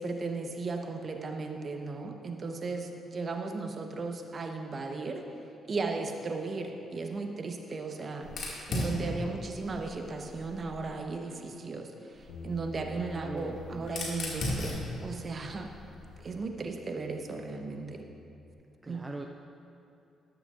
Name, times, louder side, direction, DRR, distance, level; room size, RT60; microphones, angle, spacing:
voice 1, 0.0-5.2 5.7-8.3 8.7-15.7 16.2-18.0 18.9-19.0, right 3 dB, 45° right, 4 dB, 1.1 m, -36 dB
Fire, 8.2-11.0 12.1-16.4, left 1 dB, 60° left, 2.3 m, -38 dB
Bass guitar, 12.3-18.5, left 2 dB, 90° left, 1.0 m, -49 dB
voice 2, 12.9-13.9 18.8-19.3, right 2 dB, 25° right, 3 dB, 0.6 m, -42 dB
12.5 x 12.0 x 2.6 m, 2.7 s
hypercardioid pair, 45°, 0 cm